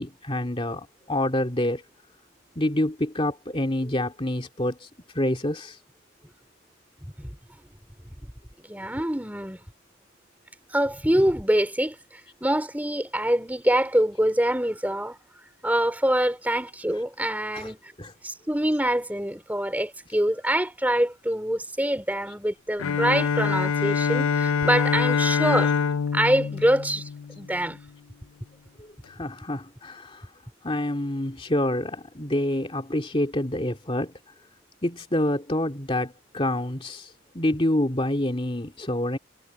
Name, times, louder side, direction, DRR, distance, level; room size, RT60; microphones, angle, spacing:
voice 1, 0.0-1.8 2.6-4.9 5.1-5.8 17.5-17.7 18.0-18.1 25.6-25.7 29.1-30.2 30.6-34.1 34.8-39.2, left 1 dB, 25° left, 2.5 m, -27 dB
voice 2, 8.6-9.6 10.7-15.2 15.6-17.9 18.2-25.7 26.1-27.1 27.3-27.8, right 1 dB, 10° right, 3.3 m, -25 dB
Bowed string instrument, 22.8-27.7, left 6 dB, 80° left, 0.5 m, -25 dB
head